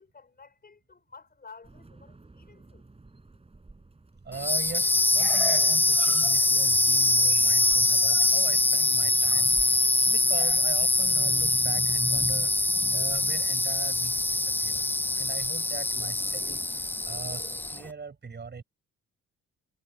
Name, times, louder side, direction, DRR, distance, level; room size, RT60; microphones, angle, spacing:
voice 1, 0.0-2.9, left 5 dB, 30° left, 5.5 m, -52 dB
sound 1, 1.6-17.6, right 3 dB, 20° right, 7.9 m, -53 dB
voice 2, 4.2-12.5 12.9-14.9 15.1-18.6, right 5 dB, 35° right, 6.6 m, -41 dB
sound 2, 4.3-17.9, left 2 dB, 5° left, 0.4 m, -24 dB
cardioid pair, 90°, 30 cm